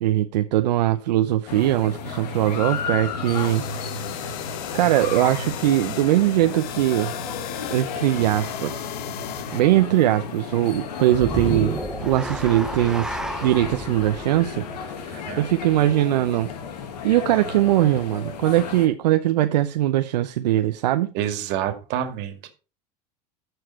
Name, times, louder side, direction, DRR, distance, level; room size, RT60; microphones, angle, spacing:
voice 1, 0.0-3.6 4.7-7.1 7.7-8.9 9.5-14.7 15.1-16.5 17.0-21.1, right 14 dB, 80° right, 0.7 m, -21 dB
sound 1, 1.5-18.9, left 5 dB, 75° left, 1.6 m, -33 dB
sound 2, 3.2-9.6, left 12 dB, 55° left, 1.0 m, -37 dB
sound 3, 11.1-15.5, right 1 dB, 5° right, 0.5 m, -32 dB
voice 2, 15.1-15.5 21.1-22.5, right 10 dB, 55° right, 2.0 m, -28 dB
14.0 x 4.7 x 4.2 m
hypercardioid pair, 100°, 21 cm